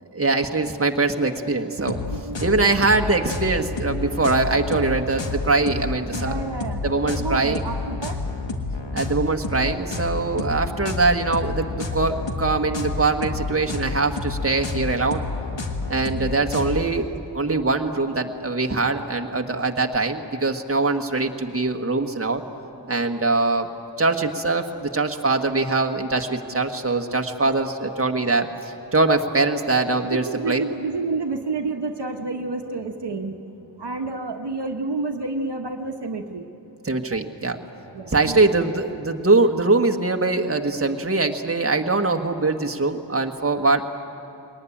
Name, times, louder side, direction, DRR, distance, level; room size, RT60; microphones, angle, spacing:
voice 1, 0.1-2.0 2.4-6.5 6.8-7.7 8.9-15.2 15.9-22.4 22.9-23.7 24.0-30.6 36.8-37.6 38.1-43.8, right 3 dB, 30° right, 3 dB, 1.4 m, -22 dB
sound 1, 1.9-16.9, left 3 dB, 80° left, 1.8 m, -29 dB
voice 2, 2.1-2.7 6.1-8.2 16.1-16.4 30.0-33.3 33.8-36.5 37.1-37.2 37.9-38.6, right 3 dB, 65° right, 5 dB, 1.2 m, -30 dB
21.5 x 18.5 x 10.0 m, 2.9 s
wide cardioid pair, 55°, 44 cm